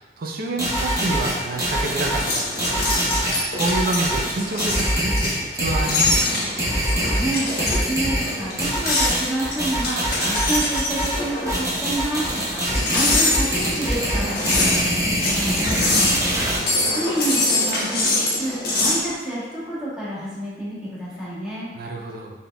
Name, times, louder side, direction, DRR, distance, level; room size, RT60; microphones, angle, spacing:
voice 1, 0.0-2.6 3.5-6.5 16.4-16.9 21.7-22.3, right 2 dB, 55° right, 1 dB, 0.5 m, -28 dB
sound 1, 0.6-16.6, equal, 20° right, 0.8 m, -24 dB
sound 2, 0.7-19.0, left 2 dB, 60° left, 1.1 m, -25 dB
voice 2, 7.2-12.3 12.5-12.6 12.9-16.3 16.9-21.7, right 1 dB, 5° right, -10 dB, 1.2 m, -29 dB
4.1 x 3.6 x 2.2 m, 1.3 s
head